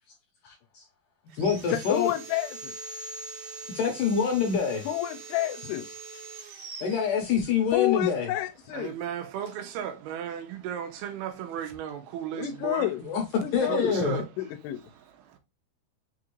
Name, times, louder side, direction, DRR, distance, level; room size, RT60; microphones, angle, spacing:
voice 1, 0.4-0.8 1.3-2.1 3.7-4.9 6.8-8.3 13.0-14.2, left 6 dB, 75° left, 2.0 m, -26 dB
Sawing, 1.3-7.8, right 3 dB, 65° right, 1.7 m, -43 dB
voice 2, 1.7-2.7 4.9-5.9 7.7-8.9 12.3-13.0 13.4-13.9 14.4-14.8, left 14 dB, 90° left, 2.7 m, -29 dB
voice 3, 8.7-12.9 13.7-14.3 14.9-15.4, right 9 dB, 85° right, 2.7 m, -35 dB
6.2 x 2.5 x 3.0 m
omnidirectional pair, 4.6 m